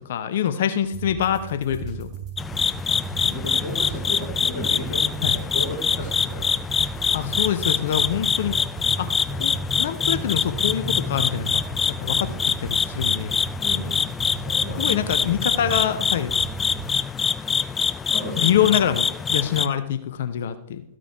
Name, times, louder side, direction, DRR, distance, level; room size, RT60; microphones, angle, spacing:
voice 1, 0.1-2.1 5.2-5.3 7.1-8.6 9.0-9.1 9.4-13.4 14.8-16.3 18.3-20.8, left 9 dB, 55° left, 11 dB, 0.6 m, -25 dB
sound 1, 0.9-16.9, right 8 dB, 35° right, 4.0 m, -37 dB
sound 2, 2.4-19.7, left 6 dB, 15° left, 0.3 m, -24 dB
voice 2, 2.8-6.5 13.6-14.0 14.4-15.0 18.1-18.5, left 2 dB, 40° left, -1 dB, 2.4 m, -34 dB
13.5 x 6.4 x 4.5 m, 0.76 s
figure-of-eight pair, 100°, 0 cm